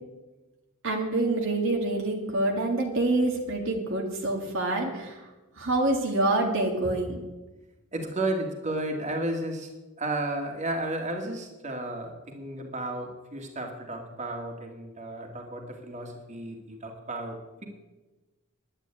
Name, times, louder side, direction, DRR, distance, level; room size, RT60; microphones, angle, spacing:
voice 1, 0.8-5.3 5.6-7.2, right 2 dB, 60° right, 0 dB, 2.1 m, -26 dB
voice 2, 7.9-9.7 10.0-17.7, right 1 dB, 30° right, 2 dB, 2.4 m, -33 dB
11.0 x 10.0 x 9.1 m, 1.1 s
head